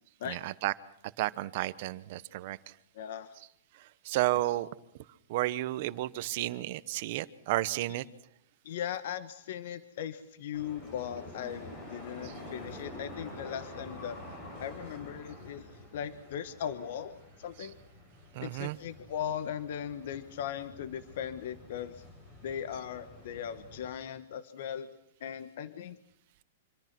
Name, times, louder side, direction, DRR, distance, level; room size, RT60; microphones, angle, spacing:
voice 1, 0.3-0.7 1.2-2.6 4.0-4.7 5.3-8.0 12.2-12.3 18.3-18.8, right 16 dB, 35° right, 15 dB, 1.0 m, -32 dB
voice 2, 2.9-3.3 8.6-14.2 14.6-17.8 18.4-22.0 22.4-24.9 25.2-26.0, left 9 dB, 50° left, 12 dB, 1.3 m, -38 dB
sound 1, 10.5-23.9, left 1 dB, 20° left, 6.9 m, -48 dB
26.0 x 25.0 x 6.1 m, 0.73 s
supercardioid pair, 175°, 0 cm